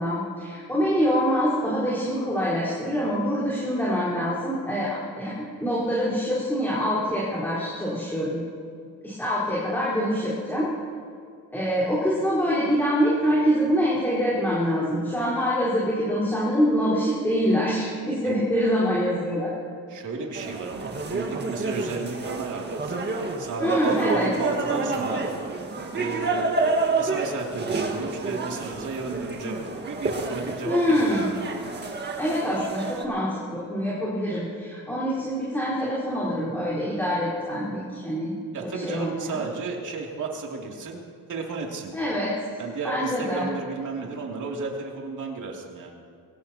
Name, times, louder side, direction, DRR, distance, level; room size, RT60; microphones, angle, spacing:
voice 1, 0.0-8.4 9.0-10.7 11.5-19.5 23.6-24.3 30.7-31.3 32.1-38.4 38.8-39.4 41.9-42.3 42.8-43.5, equal, 5° left, -9 dB, 4.5 m, -25 dB
voice 2, 19.9-23.0 23.4-25.3 25.9-30.8 31.2-31.3 38.5-41.0 41.3-41.9 42.6-46.0, right 4 dB, 55° right, -1 dB, 2.9 m, -33 dB
sound 1, 20.4-33.1, right 3 dB, 30° right, 1.7 m, -29 dB
23.0 x 17.0 x 3.0 m, 2.4 s
cardioid pair, 115°, 36 cm